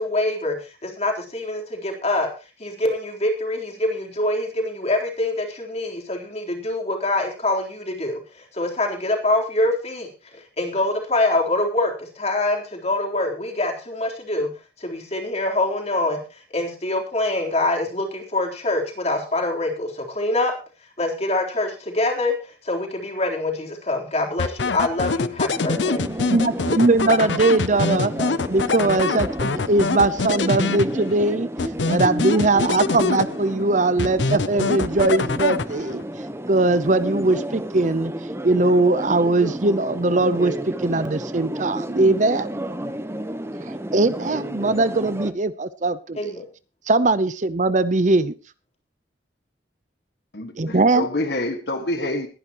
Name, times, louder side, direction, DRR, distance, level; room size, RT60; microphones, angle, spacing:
voice 1, 0.0-2.3 2.6-14.5 14.8-20.5 21.0-26.0 46.1-46.4, left 2 dB, 35° left, 3.9 m, -25 dB
sound 1, 24.4-31.2 31.6-33.6 34.0-36.0, left 4 dB, 85° left, 0.7 m, -24 dB
sound 2, 25.6-45.3, right 1 dB, 15° right, 1.0 m, -32 dB
voice 2, 26.3-28.1 28.5-31.5 31.9-36.0 36.5-38.1 38.4-40.5 40.8-42.5 43.9-46.3 46.9-48.3 50.6-51.0, right 2 dB, 45° right, 0.8 m, -20 dB
voice 3, 50.3-52.3, left 1 dB, 65° left, 1.8 m, -27 dB
21.0 x 10.5 x 3.1 m
head